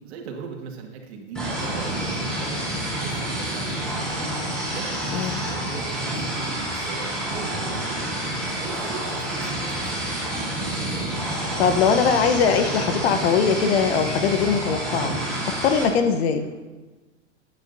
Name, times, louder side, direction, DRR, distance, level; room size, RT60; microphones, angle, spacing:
voice 1, 0.0-2.7 3.0-4.2 4.7-8.2 8.6-10.4, right 5 dB, 65° right, 3 dB, 1.9 m, -39 dB
sound 1, 1.3-15.8, right 1 dB, ahead, 3.5 m, -28 dB
sound 2, 2.6-16.5, right 2 dB, 35° right, 3.0 m, -44 dB
voice 2, 11.6-15.1 15.5-16.5, left 6 dB, 65° left, 9 dB, 1.0 m, -21 dB
13.0 x 9.0 x 2.7 m, 1.2 s
hypercardioid pair, 110°, 34 cm